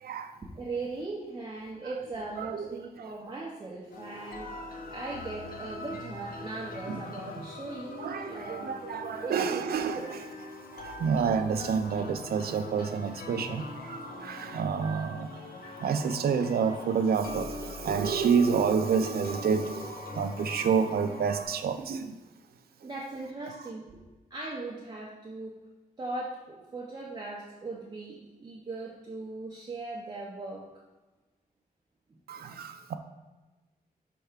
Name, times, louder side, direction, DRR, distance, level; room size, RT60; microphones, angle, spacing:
voice 1, 0.4-4.6 4.9-8.7 9.2-10.1 22.8-23.9 24.3-25.6 26.0-30.7 32.1-32.2, right 2 dB, 25° right, -4 dB, 0.7 m, -39 dB
voice 2, 2.4-2.7 3.0-3.1 6.9-7.0 8.0-10.0 10.7-15.4 15.8-22.1 32.3-33.0, right 6 dB, 75° right, 8 dB, 0.4 m, -29 dB
sound 1, 3.9-21.5, left 2 dB, 65° left, 0.7 m, -42 dB
5.5 x 3.4 x 4.9 m, 1.2 s
wide cardioid pair, 170°, 16 cm